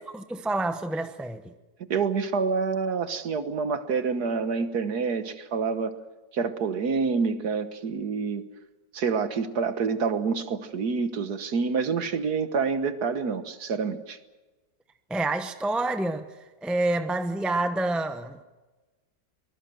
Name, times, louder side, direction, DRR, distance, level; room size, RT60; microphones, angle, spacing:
voice 1, 0.1-1.4 15.1-16.2 16.6-18.4, right 2 dB, ahead, 0.4 m, -28 dB
voice 2, 1.9-5.9 6.3-8.5 8.9-14.2, right 5 dB, 60° right, 1.7 m, -27 dB
24.5 x 19.5 x 7.8 m
omnidirectional pair, 2.0 m